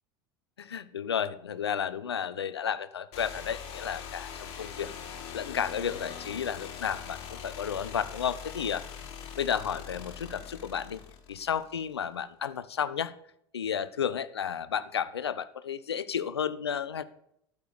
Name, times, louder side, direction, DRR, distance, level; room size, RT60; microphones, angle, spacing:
voice 1, 0.6-4.9 5.3-8.8 9.4-11.0 11.3-13.1 13.5-17.0, left 8 dB, 80° left, 16 dB, 0.6 m, -32 dB
sound 1, 3.1-11.9, left 7 dB, 50° left, 2.7 m, -42 dB
11.5 x 6.8 x 6.7 m, 0.75 s
figure-of-eight pair, 75°, 13 cm